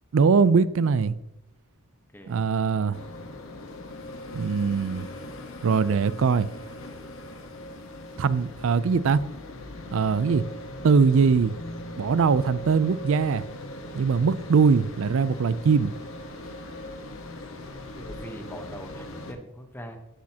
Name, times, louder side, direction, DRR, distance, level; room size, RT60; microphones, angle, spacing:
voice 1, 0.1-1.1 2.3-3.0 4.3-5.1 5.6-6.5 8.2-9.2 9.9-10.5 10.8-11.5 12.0-13.4 14.0-15.9, right 5 dB, 65° right, 0.4 m, -21 dB
sound 1, 2.9-19.3, left 1 dB, 70° left, 1.2 m, -40 dB
voice 2, 18.0-20.0, equal, 10° left, 1.0 m, -42 dB
10.0 x 8.6 x 2.9 m
head